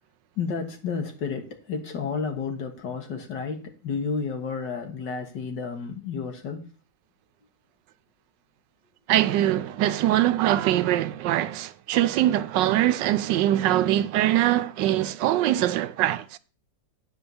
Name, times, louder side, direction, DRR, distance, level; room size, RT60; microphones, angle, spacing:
voice 1, 0.4-6.6, left 5 dB, 70° left, 2.1 m, -31 dB
voice 2, 9.1-16.4, right 13 dB, 80° right, 1.3 m, -23 dB
9.9 x 4.6 x 6.9 m
omnidirectional pair, 2.0 m